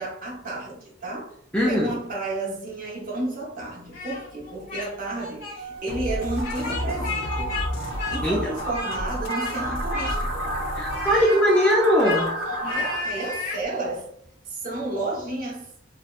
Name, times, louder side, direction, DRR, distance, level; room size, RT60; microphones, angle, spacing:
voice 1, 0.0-1.4 1.6-7.5 8.1-10.5 12.5-14.1 14.5-15.7, right 2 dB, 45° right, 0.8 m, -32 dB
voice 2, 1.5-2.0 8.2-8.4 10.8-12.3, equal, 5° left, 0.3 m, -20 dB
Speech, 3.9-4.9 5.2-5.6 6.4-7.7 8.0-9.0 9.3-9.6 9.9-10.5 10.9-13.6, left 3 dB, 50° left, 0.8 m, -33 dB
sound 1, 5.6-13.0, right 2 dB, 70° right, 0.9 m, -32 dB
sound 2, 5.9-11.2, left 1 dB, 80° left, 0.4 m, -32 dB
2.8 x 2.1 x 2.2 m
head